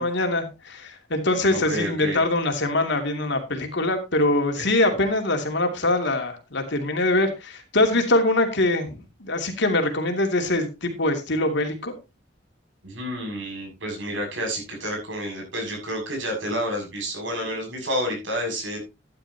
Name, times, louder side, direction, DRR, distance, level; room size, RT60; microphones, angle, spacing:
voice 1, 0.0-11.9, left 2 dB, 65° left, 5 dB, 2.7 m, -23 dB
voice 2, 1.5-2.2 4.6-4.7 12.8-18.8, equal, 70° right, 2 dB, 7.0 m, -29 dB
13.5 x 10.5 x 2.9 m, 0.25 s
head